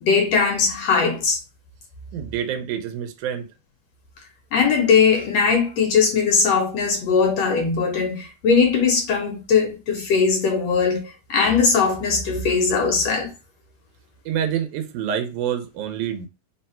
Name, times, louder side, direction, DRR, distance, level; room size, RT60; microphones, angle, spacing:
voice 1, 0.0-1.4 4.5-11.0 11.3-13.3, left 5 dB, 70° left, 1.7 m, -20 dB
voice 2, 2.1-3.5 14.3-16.3, right 9 dB, 90° right, 2.2 m, -27 dB
4.8 x 2.2 x 4.2 m
omnidirectional pair, 3.5 m